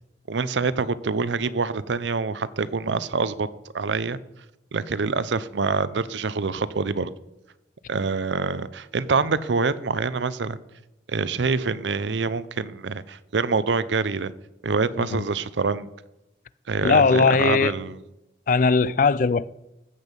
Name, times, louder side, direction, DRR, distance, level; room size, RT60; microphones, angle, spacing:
voice 1, 0.3-3.5 3.7-4.2 4.7-7.1 7.9-10.6 11.1-14.3 14.6-15.9 16.7-18.0, right 4 dB, 85° right, 0.6 m, -25 dB
voice 2, 16.8-17.7 18.5-19.5, left 4 dB, 45° left, 0.4 m, -19 dB
14.0 x 8.3 x 5.3 m
head